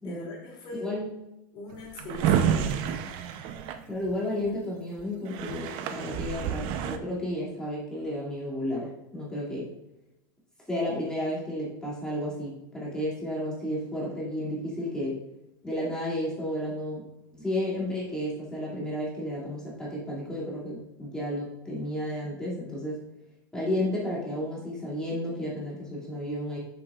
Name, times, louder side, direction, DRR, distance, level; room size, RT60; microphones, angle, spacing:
voice 1, 0.0-0.9 1.5-3.0, left 2 dB, 45° left, -2 dB, 2.7 m, -40 dB
Drawer open or close, 1.7-4.5 5.0-5.1 5.3-7.0, right 8 dB, 50° right, 0.7 m, -29 dB
voice 2, 3.9-9.7 10.7-15.2 15.6-17.0 17.3-23.0 23.5-26.6, left 1 dB, 5° left, -6 dB, 2.4 m, -32 dB
8.3 x 6.8 x 2.4 m, 0.92 s
supercardioid pair, 125°, 11 cm